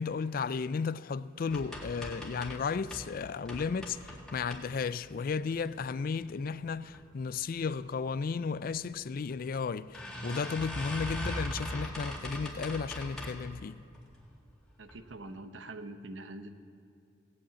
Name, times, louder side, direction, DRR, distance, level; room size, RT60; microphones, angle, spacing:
voice 1, 0.0-13.8, left 5 dB, 50° left, 0.4 m, -34 dB
sound 1, 1.5-3.1 3.4-5.1 5.5-6.2 6.6-7.0 7.3-7.4 7.7-7.8 8.8-8.9 9.3-9.4 9.9-13.5 13.9-14.4 14.8-15.0 15.3-15.4, equal, 5° left, 2.0 m, -40 dB
voice 2, 14.8-16.5, right 2 dB, 80° right, 1.0 m, -44 dB
17.5 x 8.8 x 8.4 m
head